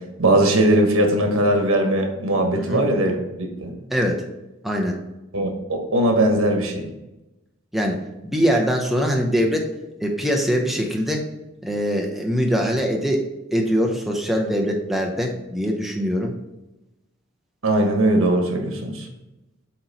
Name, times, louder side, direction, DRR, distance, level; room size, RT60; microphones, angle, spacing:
voice 1, 0.2-3.7 5.3-6.9 17.6-19.1, right 1 dB, 85° right, 2 dB, 1.3 m, -20 dB
voice 2, 3.9-4.2 4.6-5.0 7.7-9.7 10.0-11.3 11.6-13.2 13.5-16.3, equal, ahead, 0 dB, 0.6 m, -22 dB
7.8 x 3.1 x 4.0 m, 0.99 s
head